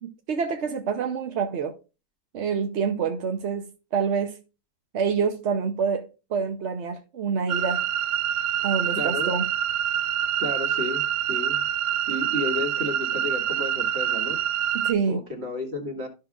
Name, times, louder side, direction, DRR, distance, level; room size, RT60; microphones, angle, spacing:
voice 1, 0.0-1.7 2.3-4.4 4.9-7.9 8.6-9.5 14.7-15.2, right 6 dB, 55° right, 0.8 m, -27 dB
sound 1, 7.5-14.9, right 10 dB, 85° right, 1.2 m, -26 dB
voice 2, 8.9-9.3 10.4-11.6 12.1-14.4 15.1-16.1, left 1 dB, 40° right, 1.9 m, -32 dB
13.5 x 5.7 x 2.4 m
omnidirectional pair, 1.8 m